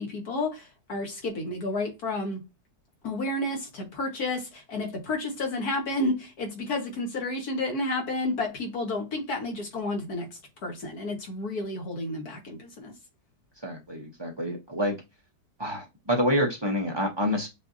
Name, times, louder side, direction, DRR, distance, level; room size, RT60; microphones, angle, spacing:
voice 1, 0.0-2.4 3.0-10.3 10.6-12.9, left 2 dB, 60° left, 1.8 m, -31 dB
voice 2, 13.6-14.9 15.6-17.5, equal, 25° right, 0.6 m, -27 dB
7.4 x 2.7 x 2.6 m
omnidirectional pair, 1.8 m